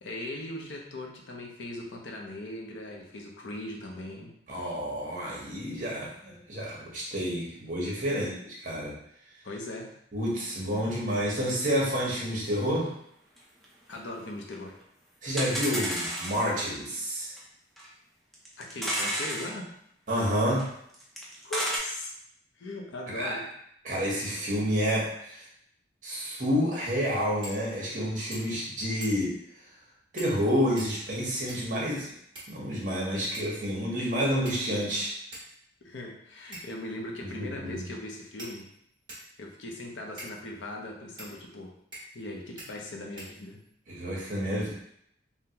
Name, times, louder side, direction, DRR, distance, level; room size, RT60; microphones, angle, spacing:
voice 1, 0.0-4.3 8.1-8.3 9.4-9.9 13.9-14.8 18.6-19.7 21.4-22.1 22.6-23.5 35.8-38.7 39.4-41.7 42.1-43.6, left 1 dB, 75° left, 0 dB, 0.6 m, -39 dB
voice 2, 4.5-8.3 8.6-9.0 10.1-12.9 15.2-17.3 20.1-20.7 23.1-23.4 23.8-25.4 26.0-29.3 30.1-32.1 32.5-35.1 37.2-37.8 43.9-44.7, equal, 40° right, -4 dB, 0.9 m, -29 dB
sound 1, 13.4-13.5 13.6-13.7 13.9-14.0 14.5-14.6 14.8-14.9 15.4-16.5 17.4-17.5 17.8-17.9 18.3-19.5 20.6-20.7 20.9-21.8, equal, ahead, 0.4 m, -31 dB
sound 2, 27.4-27.6 27.9-28.0 28.3-28.6 29.0-29.4 30.2-30.4 30.8-31.8 32.3-32.9 33.3-33.6 34.5-34.9 35.3-35.5 36.5-36.9 37.7-37.8 38.4-39.3 40.2-40.4 41.2-41.3 41.9-42.3 42.6-42.7 43.2-43.7, right 1 dB, 25° right, 1.1 m, -45 dB
3.6 x 2.1 x 2.8 m, 0.72 s
head